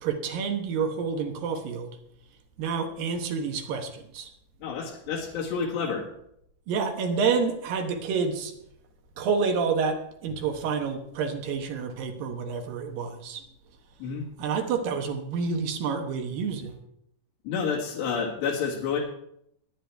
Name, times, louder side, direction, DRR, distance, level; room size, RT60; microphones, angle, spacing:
voice 1, 0.0-2.0 2.6-4.3 6.7-8.5 9.2-13.4 14.4-16.8, right 5 dB, 65° right, 5 dB, 2.7 m, -28 dB
voice 2, 4.6-6.1 14.0-14.3 17.4-19.0, left 6 dB, 85° left, -4 dB, 3.9 m, -29 dB
21.0 x 10.0 x 3.4 m, 0.75 s
omnidirectional pair, 4.7 m